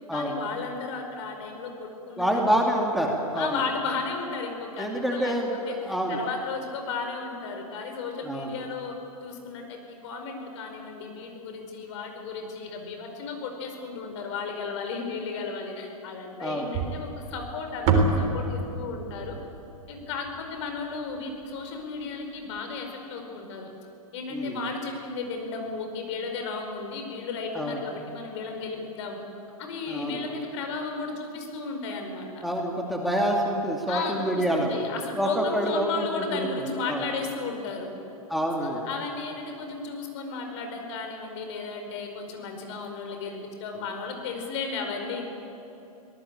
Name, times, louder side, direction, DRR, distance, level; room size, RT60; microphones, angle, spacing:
voice 1, 0.1-2.6 3.3-5.3 5.7-8.9 9.2-19.4 19.9-23.7 24.1-29.2 29.6-32.4 33.9-37.9 38.6-45.2, left 4 dB, 50° left, 4 dB, 5.0 m, -34 dB
voice 2, 2.2-3.6 4.8-6.2 8.2-8.5 16.4-16.7 24.3-24.6 27.5-27.8 29.9-30.2 32.4-34.7 35.1-37.0 38.3-38.9, equal, ahead, 0 dB, 2.6 m, -27 dB
sound 1, 16.7-21.0, right 3 dB, 35° right, 3.7 m, -28 dB
25.0 x 18.0 x 8.8 m, 2.9 s
figure-of-eight pair, 110°, 19 cm